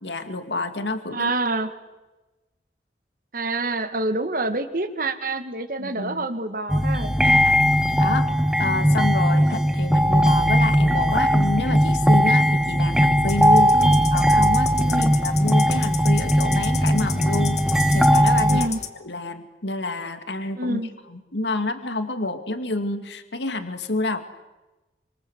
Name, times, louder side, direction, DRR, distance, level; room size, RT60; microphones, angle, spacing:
voice 1, 0.0-1.3 5.8-6.2 7.2-7.6 8.0-8.3 8.6-13.8 14.1-17.6 17.9-18.7 19.0-20.8 21.1-24.2, left 2 dB, 85° left, 8 dB, 2.3 m, -28 dB
voice 2, 1.1-1.7 3.3-7.1 13.7-14.0 14.9-15.1 18.5-18.8 20.5-20.9, right 2 dB, 55° right, 9 dB, 2.1 m, -27 dB
sound 1, 6.7-18.7, equal, 5° right, 1.3 m, -19 dB
sound 2, 13.3-18.9, left 9 dB, 40° left, 2.1 m, -34 dB
27.5 x 26.0 x 8.1 m, 1.1 s
head